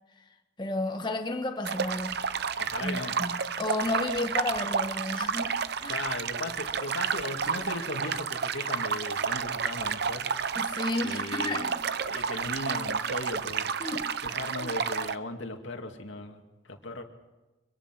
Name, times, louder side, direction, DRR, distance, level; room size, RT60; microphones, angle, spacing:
voice 1, 0.6-2.2 2.8-6.0 10.5-11.8 13.8-14.1 14.6-14.7, left 2 dB, 25° left, 1.6 m, -32 dB
sound 1, 1.6-15.2, right 6 dB, 55° right, 0.7 m, -31 dB
voice 2, 2.6-3.1 5.9-10.3 11.0-11.7 12.1-13.8 14.2-17.0, left 2 dB, 75° left, 2.5 m, -37 dB
25.0 x 23.0 x 6.1 m
head